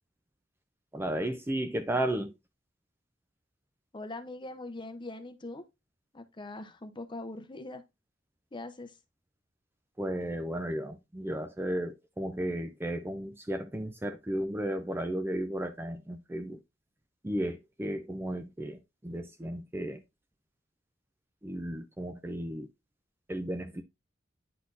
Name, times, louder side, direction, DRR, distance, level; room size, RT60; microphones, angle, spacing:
voice 1, 0.9-2.3 10.0-16.6 17.2-20.0 21.4-22.7 23.3-23.8, right 1 dB, 10° right, 0.4 m, -34 dB
voice 2, 3.9-5.6 6.1-7.8 8.5-9.0, left 2 dB, 25° left, 0.7 m, -42 dB
9.4 x 4.2 x 2.5 m
head